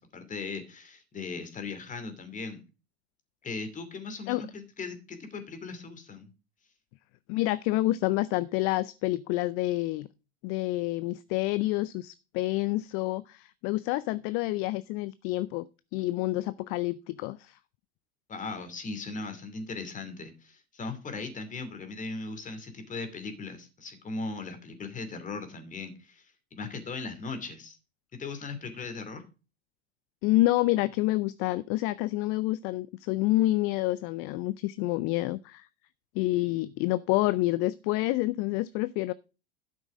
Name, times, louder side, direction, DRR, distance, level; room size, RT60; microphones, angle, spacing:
voice 1, 0.0-2.6 3.4-6.3 18.3-26.3 26.5-27.8 28.1-29.2, left 4 dB, 25° left, 2.8 m, -38 dB
voice 2, 7.3-10.1 10.4-15.7 15.9-17.6 30.2-35.7 36.1-39.1, left 18 dB, 45° left, 0.5 m, -28 dB
12.0 x 6.2 x 4.9 m
hypercardioid pair, 95°, 33 cm